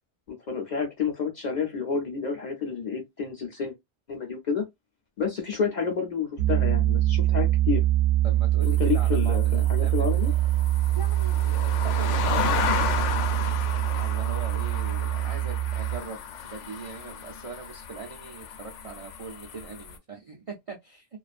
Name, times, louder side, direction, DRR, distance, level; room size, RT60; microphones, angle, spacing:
voice 1, 0.3-3.7 4.1-4.6 5.2-7.8 8.6-10.3, left 5 dB, 50° left, 0.6 m, -29 dB
Piano, 6.4-16.0, right 14 dB, 70° right, 0.9 m, -24 dB
voice 2, 8.2-10.3 11.0-13.3 13.9-21.1, right 4 dB, 50° right, 0.4 m, -41 dB
sound 1, 8.6-20.0, left 6 dB, 90° left, 0.9 m, -33 dB
2.4 x 2.4 x 2.4 m
omnidirectional pair, 1.2 m